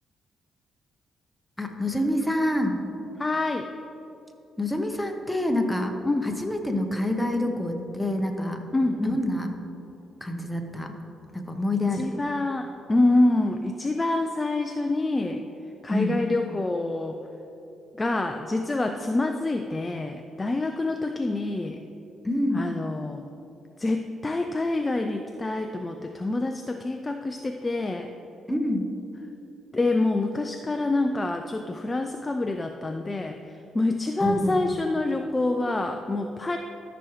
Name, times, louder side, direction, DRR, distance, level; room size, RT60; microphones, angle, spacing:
voice 1, 1.6-2.8 4.6-5.9 6.2-8.6 9.0-9.5 10.2-10.9 11.3-12.2 15.9-16.2 22.2-22.6 28.5-28.9 34.2-34.6, left 1 dB, 5° left, 3 dB, 0.9 m, -27 dB
voice 2, 3.2-3.7 6.0-6.2 8.7-9.2 11.9-15.4 15.8-17.2 18.0-21.8 22.5-23.2 23.8-28.1 29.7-33.4 33.7-36.6, left 2 dB, 20° left, 5 dB, 0.4 m, -26 dB
13.0 x 6.0 x 3.2 m, 2.9 s
cardioid pair, 90°, 0 cm